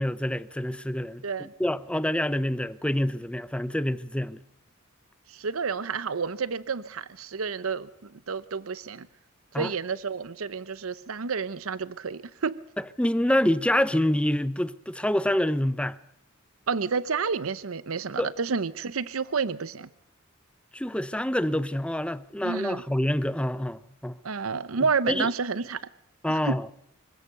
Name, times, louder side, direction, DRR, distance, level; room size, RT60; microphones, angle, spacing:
voice 1, 0.0-4.4 9.5-9.7 13.0-16.0 18.2-18.3 20.7-24.2 25.1-25.3 26.2-26.7, left 1 dB, 5° left, 0.8 m, -26 dB
voice 2, 5.3-7.9 8.3-9.1 9.6-12.6 16.7-19.9 22.4-22.8 24.2-25.8 26.4-26.6, right 5 dB, 85° right, 0.8 m, -30 dB
25.0 x 16.5 x 6.6 m
head